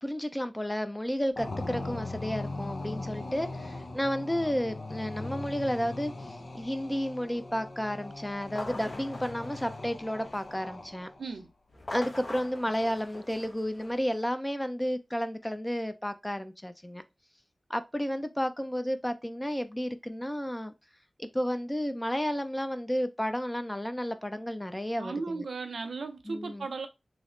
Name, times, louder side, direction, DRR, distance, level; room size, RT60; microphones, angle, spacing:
voice 1, 0.0-11.1 11.9-17.0 17.7-20.7 21.2-25.4 26.3-26.7, equal, 15° left, 0.5 m, -32 dB
sound 1, 1.4-11.2, left 2 dB, 70° left, 0.6 m, -40 dB
sound 2, 8.4-10.7 11.7-14.2, left 2 dB, 50° left, 0.9 m, -43 dB
voice 2, 11.2-11.5 25.0-26.9, right 4 dB, 80° right, 0.5 m, -36 dB
3.2 x 2.0 x 3.7 m
cardioid pair, 40°, 0 cm